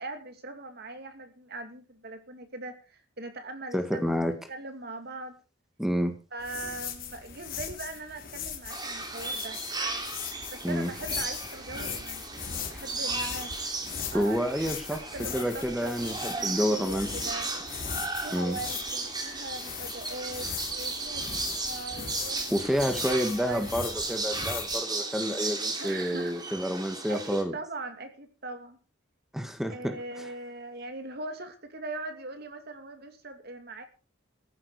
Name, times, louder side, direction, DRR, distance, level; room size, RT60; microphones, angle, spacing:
voice 1, 0.0-4.2 4.5-5.4 6.3-9.6 10.5-13.7 14.1-14.5 14.9-17.5 18.2-22.5 22.9-23.0 23.4-23.7 25.8-26.4 27.1-28.8 29.7-33.8, right 2 dB, 55° right, 7 dB, 2.5 m, -40 dB
voice 2, 3.7-4.3 5.8-6.1 10.6-10.9 14.1-15.0 15.3-17.1 18.3-18.6 22.5-27.5 29.3-30.3, equal, ahead, 6 dB, 1.9 m, -29 dB
sound 1, 6.4-24.8, left 7 dB, 50° left, 3.2 m, -39 dB
sound 2, 8.7-27.4, right 3 dB, 20° right, 3.0 m, -35 dB
14.5 x 11.0 x 4.9 m, 0.34 s
head